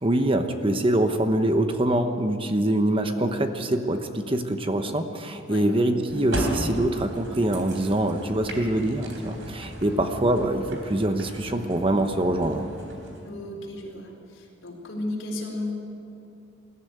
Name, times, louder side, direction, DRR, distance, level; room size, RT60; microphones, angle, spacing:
voice 1, 0.0-12.7, right 1 dB, 25° right, 7 dB, 1.0 m, -24 dB
sound 1, 6.1-13.3, right 1 dB, 70° right, 3.7 m, -35 dB
voice 2, 13.2-15.7, left 1 dB, 65° left, 0 dB, 4.4 m, -34 dB
21.5 x 14.0 x 9.4 m, 2.6 s
head